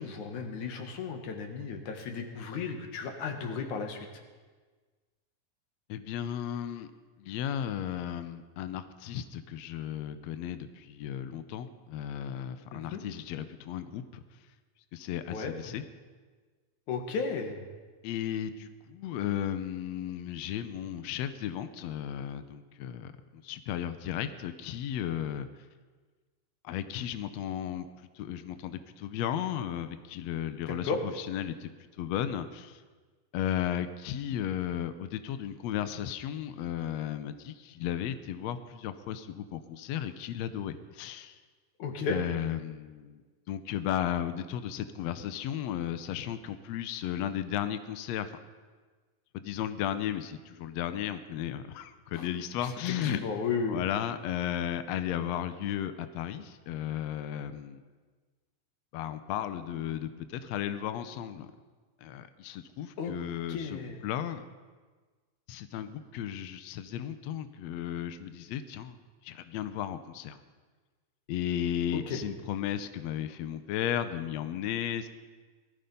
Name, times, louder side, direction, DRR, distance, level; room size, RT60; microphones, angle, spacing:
voice 1, 0.0-4.1 12.9-13.0 15.3-15.5 16.9-17.6 30.7-31.0 41.8-42.2 52.2-52.3 52.9-53.8 63.0-63.1 63.5-64.0 71.9-72.2, left 5 dB, 65° left, 5 dB, 2.8 m, -34 dB
voice 2, 5.9-6.9 7.2-14.2 14.9-15.8 18.0-25.5 26.6-27.9 28.1-31.7 32.0-32.8 33.3-41.4 42.1-43.2 43.5-48.3 49.3-53.2 53.7-57.8 58.9-61.5 62.0-64.5 65.5-69.0 69.2-70.4 71.3-75.1, left 10 dB, 85° left, 11 dB, 1.5 m, -34 dB
19.0 x 14.0 x 5.4 m, 1.4 s
omnidirectional pair, 3.9 m